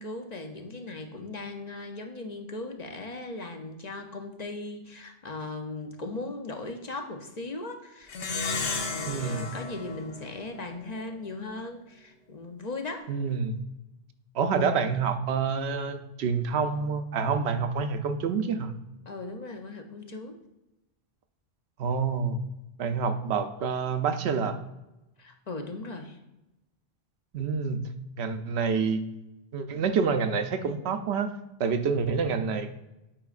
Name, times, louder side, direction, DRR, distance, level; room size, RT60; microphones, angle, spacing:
voice 1, 0.0-13.1 19.1-20.4 25.2-26.2, left 2 dB, 45° left, 4 dB, 0.7 m, -38 dB
Plucked string instrument, 8.1-10.9, left 4 dB, 70° left, 1.0 m, -34 dB
voice 2, 9.1-9.5 13.1-13.5 14.3-18.7 21.8-22.4 22.8-24.6 27.3-27.9 28.2-29.0 29.5-31.3 31.6-32.7, right 5 dB, 80° right, 9 dB, 0.9 m, -27 dB
8.8 x 5.0 x 2.4 m, 0.97 s
omnidirectional pair, 1.1 m